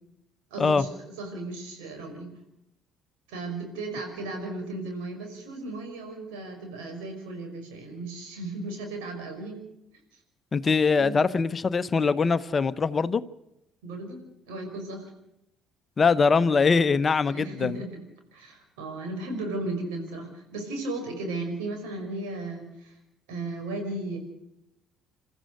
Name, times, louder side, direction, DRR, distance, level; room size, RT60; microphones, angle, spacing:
voice 1, 0.5-2.3 3.3-9.6 10.1-10.2 11.0-11.2 13.8-15.1 17.3-17.9 18.3-22.9 23.3-24.2, right 2 dB, 75° right, 4 dB, 5.6 m, -35 dB
voice 2, 10.5-13.2 16.0-17.8, left 4 dB, 35° left, 13 dB, 0.9 m, -22 dB
28.5 x 14.0 x 6.7 m, 0.84 s
hypercardioid pair, 55°, 0 cm